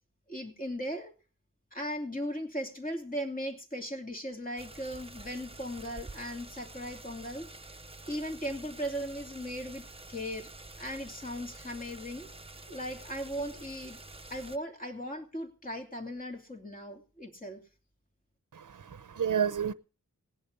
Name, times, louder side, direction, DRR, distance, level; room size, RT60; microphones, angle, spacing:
voice 1, 0.3-1.1 1.7-7.5 8.1-10.5 10.8-12.3 12.7-14.0 14.3-17.6, equal, 25° left, 2.8 m, -38 dB
sound 1, 4.6-14.6, right 2 dB, 20° right, 1.0 m, -48 dB
voice 2, 18.5-19.7, right 8 dB, 70° right, 0.8 m, -30 dB
18.5 x 11.0 x 5.3 m
wide cardioid pair, 75°, 32 cm